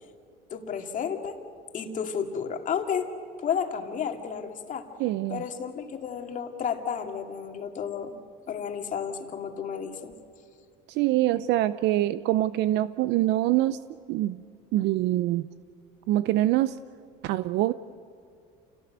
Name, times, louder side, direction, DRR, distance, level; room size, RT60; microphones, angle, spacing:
voice 1, 0.5-1.4 1.7-3.1 3.4-4.9 5.3-8.1 8.5-10.1, left 7 dB, 40° left, 2.4 m, -32 dB
voice 2, 5.0-5.4 10.9-13.8 14.1-14.4 14.7-15.5 16.1-16.8 17.2-17.7, right 15 dB, 65° right, 0.6 m, -24 dB
28.0 x 18.0 x 8.1 m
cardioid pair, 120°, 19 cm